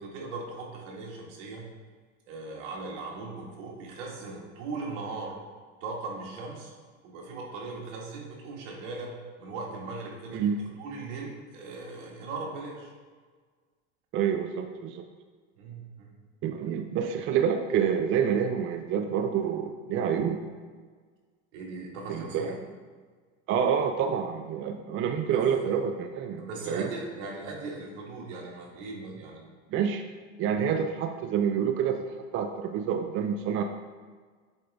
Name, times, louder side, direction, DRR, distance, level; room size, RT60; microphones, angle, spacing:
voice 1, 0.0-1.7 2.3-5.4 5.8-6.7 7.0-12.9 15.6-16.1 21.5-22.6 25.3-25.4 26.4-29.5, right 3 dB, 75° right, -2 dB, 1.8 m, -39 dB
voice 2, 14.1-15.1 16.4-20.4 22.1-22.6 23.5-26.9 29.7-30.1 30.4-32.0 32.3-33.6, right 7 dB, 35° right, 6 dB, 0.4 m, -28 dB
7.8 x 3.8 x 3.5 m, 1.5 s
supercardioid pair, 110°, 37 cm